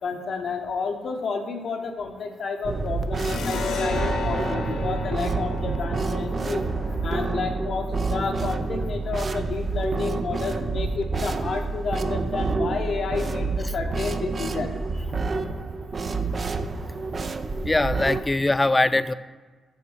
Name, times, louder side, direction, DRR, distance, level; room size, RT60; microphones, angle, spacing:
voice 1, 0.0-6.6 7.0-15.1 15.3-15.5 17.5-17.6, left 5 dB, 65° left, 3 dB, 0.8 m, -31 dB
sound 1, 2.6-18.2, right 3 dB, 45° right, 0.5 m, -28 dB
sound 2, 3.2-10.4, left 5 dB, 90° left, 1.0 m, -35 dB
voice 2, 17.6-19.1, left 2 dB, 20° left, 14 dB, 0.4 m, -21 dB
7.2 x 4.0 x 6.3 m, 1.3 s
supercardioid pair, 60°, 0 cm